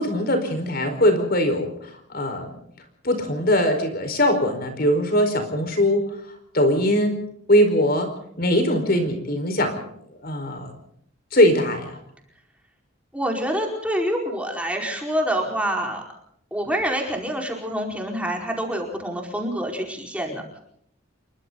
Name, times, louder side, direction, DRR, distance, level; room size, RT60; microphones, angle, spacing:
voice 1, 0.0-1.7 2.1-2.5 3.0-6.1 6.5-7.1 7.5-8.1 8.4-9.8 10.2-10.7 11.3-12.0, equal, 45° left, 7 dB, 4.8 m, -21 dB
voice 2, 13.1-16.0 16.5-20.4, equal, 5° right, 1 dB, 4.8 m, -26 dB
28.5 x 23.5 x 4.0 m, 0.68 s
head